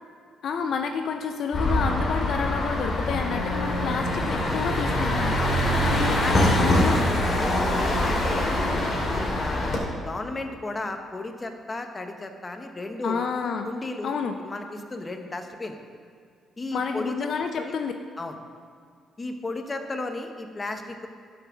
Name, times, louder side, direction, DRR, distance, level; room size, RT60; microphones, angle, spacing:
voice 1, 0.4-5.4 5.8-7.0 13.0-13.7 14.0-14.4 16.7-17.9, left 6 dB, 65° left, 5 dB, 0.6 m, -29 dB
sound 1, 1.5-9.8, left 1 dB, 45° left, 2.4 m, -24 dB
Wind instrument woodwind instrument, 3.0-9.0, equal, 90° left, 2.0 m, -38 dB
voice 2, 6.1-6.9 7.4-8.6 9.1-13.2 13.6-15.8 16.6-17.1 17.6-17.7 18.2-18.4 19.2-21.1, left 2 dB, 25° left, 5 dB, 1.0 m, -34 dB
10.5 x 5.9 x 6.2 m, 2.1 s
cardioid pair, 90°, 0 cm